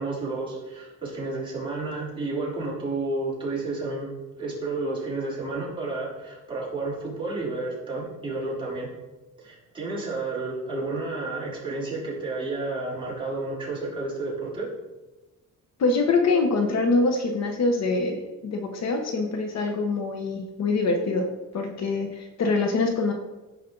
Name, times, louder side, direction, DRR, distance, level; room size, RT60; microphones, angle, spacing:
voice 1, 0.0-4.1 4.4-8.9 9.4-14.7, right 3 dB, 15° right, -7 dB, 3.5 m, -31 dB
voice 2, 15.8-23.1, left 3 dB, 55° left, 4 dB, 1.1 m, -24 dB
14.5 x 5.2 x 4.0 m, 1.1 s
cardioid pair, 160°, 32 cm